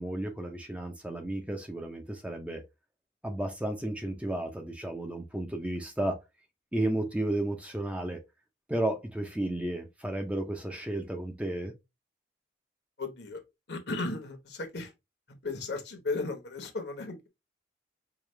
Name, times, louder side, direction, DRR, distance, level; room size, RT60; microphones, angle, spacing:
voice 1, 0.0-2.6 3.2-6.2 6.7-8.2 8.7-11.7, right 1 dB, 5° right, 0.5 m, -33 dB
voice 2, 13.0-13.4 13.7-14.9 15.4-17.3, left 3 dB, 65° left, 1.0 m, -35 dB
4.9 x 2.4 x 3.1 m
head